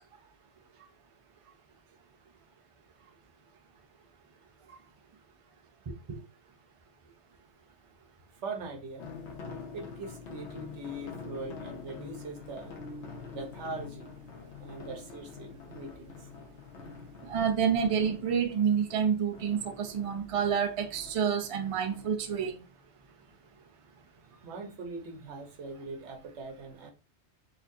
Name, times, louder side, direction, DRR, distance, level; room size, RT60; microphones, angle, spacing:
voice 1, 8.4-9.1 9.7-12.7 13.3-14.1 14.6-16.1 24.3-26.9, right 2 dB, 90° right, 1.2 m, -41 dB
sound 1, 9.0-22.5, left 4 dB, 80° left, 1.1 m, -46 dB
voice 2, 17.3-22.6, right 7 dB, 45° right, 0.4 m, -28 dB
4.1 x 2.6 x 2.6 m
omnidirectional pair, 1.2 m